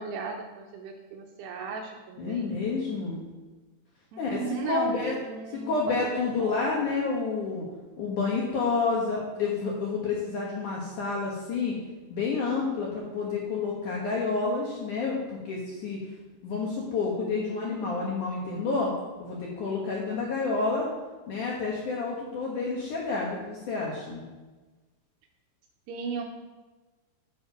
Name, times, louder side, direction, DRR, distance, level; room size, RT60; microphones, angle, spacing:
voice 1, 0.0-2.5 4.1-6.6 25.9-26.2, right 5 dB, 80° right, 3 dB, 2.6 m, -36 dB
voice 2, 2.2-3.2 4.2-4.4 4.6-5.1 5.5-7.7 8.0-11.7 12.1-16.0 16.4-18.9 19.2-20.9 21.3-24.2, left 4 dB, 65° left, -3 dB, 2.1 m, -29 dB
9.4 x 7.3 x 5.9 m, 1.2 s
omnidirectional pair, 5.3 m